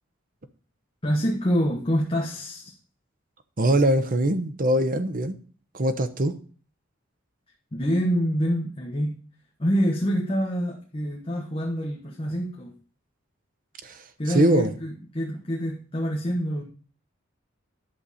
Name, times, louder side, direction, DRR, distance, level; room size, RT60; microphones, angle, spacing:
voice 1, 1.0-2.8 7.7-9.2 9.6-12.7 14.2-16.6, equal, 30° left, 1.3 m, -26 dB
voice 2, 3.6-5.4 5.7-6.4 13.8-14.0 14.3-14.7, right 1 dB, 45° right, 0.9 m, -22 dB
10.5 x 6.8 x 4.2 m
head